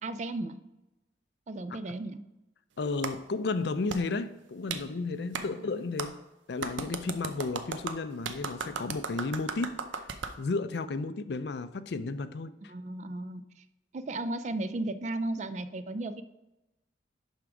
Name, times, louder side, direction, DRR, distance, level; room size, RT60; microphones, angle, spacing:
voice 1, 0.0-0.6 1.5-2.2 5.4-5.7 12.7-13.6 13.9-16.2, right 2 dB, 40° right, 0.4 m, -35 dB
voice 2, 2.8-6.2 6.5-9.8 10.4-12.7, left 3 dB, 60° left, 0.4 m, -33 dB
Clapping, 3.0-3.1 3.9-4.0 4.7-4.8 5.3-5.5 6.0-6.1 6.6-10.4, right 5 dB, 90° right, 0.6 m, -35 dB
11.0 x 3.6 x 4.8 m
head